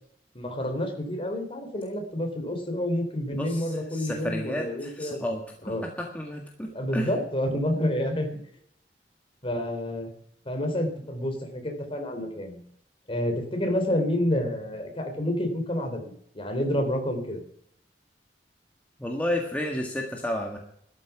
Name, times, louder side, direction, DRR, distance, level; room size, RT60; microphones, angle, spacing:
voice 1, 0.4-5.2 5.6-5.9 6.7-8.3 9.4-10.1 10.5-12.6 13.1-17.4, left 1 dB, 30° left, 5 dB, 3.5 m, -29 dB
voice 2, 3.3-5.4 5.7-7.1 19.0-20.6, left 1 dB, 10° left, 0 dB, 1.7 m, -31 dB
13.0 x 12.5 x 5.9 m, 0.66 s
head